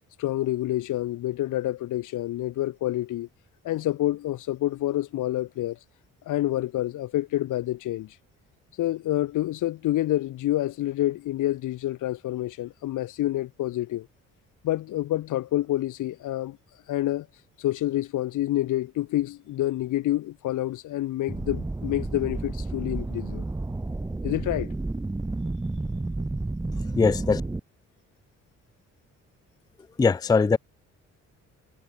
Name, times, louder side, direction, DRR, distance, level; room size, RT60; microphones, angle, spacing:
voice 1, 0.2-3.3 3.6-5.8 6.3-8.1 8.8-14.1 14.6-16.6 16.9-17.3 17.6-23.4 24.2-24.7, left 14 dB, 85° left, 3.2 m, -28 dB
sound 1, 21.3-27.6, right 2 dB, 10° right, 0.8 m, -31 dB
voice 2, 27.0-27.4 30.0-30.6, left 4 dB, 15° left, 0.4 m, -20 dB
cardioid pair, 90°, 30 cm